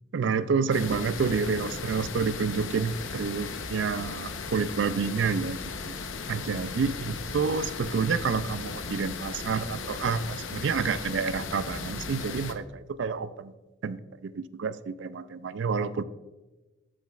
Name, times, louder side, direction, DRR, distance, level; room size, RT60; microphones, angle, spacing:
voice 1, 0.1-6.0 6.3-13.5 13.8-16.0, right 5 dB, 60° right, 15 dB, 0.3 m, -29 dB
sound 1, 0.7-12.5, left 4 dB, 70° left, 0.7 m, -36 dB
12.5 x 5.9 x 2.4 m, 1.1 s
head